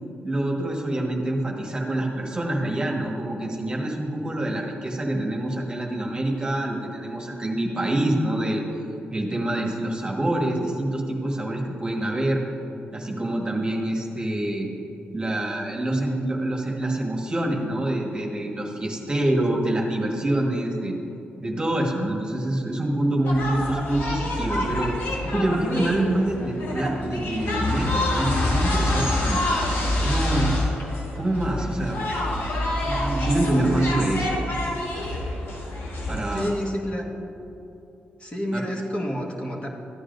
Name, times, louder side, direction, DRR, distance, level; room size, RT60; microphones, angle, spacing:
voice 1, 0.2-8.6 9.1-12.4 12.9-14.7 15.1-21.0 21.4-25.0 25.3-29.4 30.0-30.5 31.1-32.0 32.8-34.4 36.1-36.5 38.5-38.6, right 1 dB, 25° right, -1 dB, 1.5 m, -26 dB
sound 1, 23.2-36.5, left 1 dB, 80° left, 1.6 m, -27 dB
voice 2, 36.3-37.1 38.2-39.7, equal, 30° left, -2 dB, 1.5 m, -29 dB
14.0 x 9.7 x 2.6 m, 2.9 s
cardioid pair, 80°, 4 cm